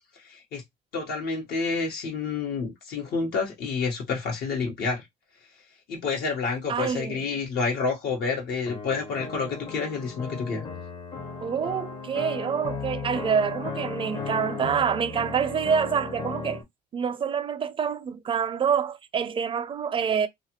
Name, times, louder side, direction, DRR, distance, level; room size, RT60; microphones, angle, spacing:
voice 1, 0.1-0.6 0.9-5.1 5.9-10.6, left 4 dB, 70° left, 1.1 m, -29 dB
voice 2, 6.7-7.2 11.4-16.6 16.9-20.3, right 7 dB, 30° right, 0.4 m, -26 dB
sound 1, 8.7-16.6, left 4 dB, 30° left, 0.6 m, -36 dB
2.6 x 2.4 x 2.9 m
cardioid pair, 110°, 17 cm